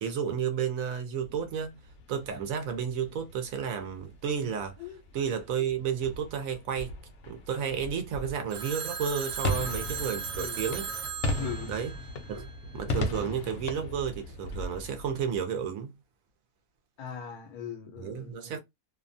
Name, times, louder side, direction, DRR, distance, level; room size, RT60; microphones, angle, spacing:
voice 1, 0.0-1.7 2.1-4.7 5.1-6.9 7.3-10.9 11.7-11.9 12.3-12.5 12.7-15.9 18.0-18.6, right 7 dB, 70° right, 1.0 m, -32 dB
sound 1, 1.2-15.4, left 1 dB, 65° left, 0.8 m, -38 dB
Telephone, 8.5-12.7, right 7 dB, 90° right, 1.2 m, -37 dB
voice 2, 10.4-10.7 11.4-11.7 17.0-18.4, left 8 dB, 80° left, 1.1 m, -39 dB
2.7 x 2.2 x 2.5 m
omnidirectional pair, 1.6 m